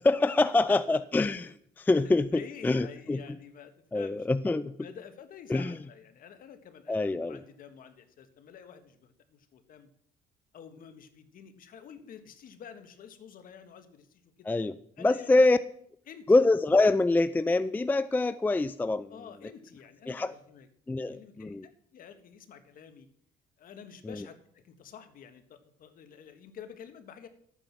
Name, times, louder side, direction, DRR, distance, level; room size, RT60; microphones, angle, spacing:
voice 1, 0.0-1.4 1.8-3.2 3.9-4.7 5.5-5.7 6.9-7.4 14.5-15.6 16.3-19.1 20.1-20.3 20.9-21.7 24.0-24.2, left 2 dB, 10° left, 14 dB, 0.4 m, -25 dB
voice 2, 2.3-4.3 4.8-9.9 10.5-14.5 15.0-15.5 16.1-16.3 19.1-20.7 21.1-21.6 21.9-23.1 23.6-27.3, left 8 dB, 55° left, 9 dB, 1.6 m, -49 dB
13.0 x 9.1 x 5.9 m, 0.67 s
cardioid pair, 110°, 17 cm